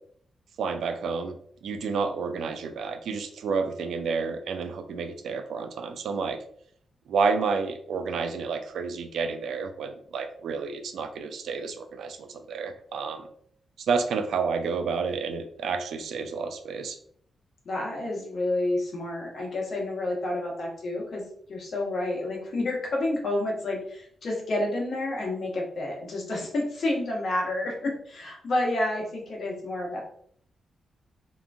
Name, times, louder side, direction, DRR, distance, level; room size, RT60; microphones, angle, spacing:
voice 1, 0.6-6.4 7.1-13.3 13.8-17.0, right 5 dB, 85° right, 8 dB, 0.3 m, -30 dB
voice 2, 17.6-30.0, left 2 dB, 60° left, -2 dB, 1.0 m, -29 dB
2.9 x 2.5 x 2.3 m, 0.63 s
cardioid pair, 100°, 0 cm